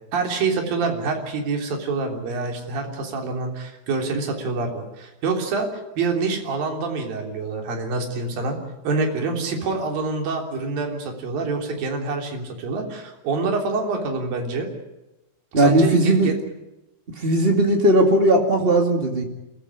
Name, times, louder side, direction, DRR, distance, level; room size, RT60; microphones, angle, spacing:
voice 1, 0.1-5.7 6.0-8.6 8.8-14.7 15.6-16.4, right 3 dB, 50° right, 3 dB, 4.9 m, -26 dB
voice 2, 15.5-16.3 17.2-19.2, right 1 dB, 85° right, 3 dB, 0.5 m, -17 dB
27.0 x 15.5 x 9.9 m, 0.99 s
omnidirectional pair, 5.4 m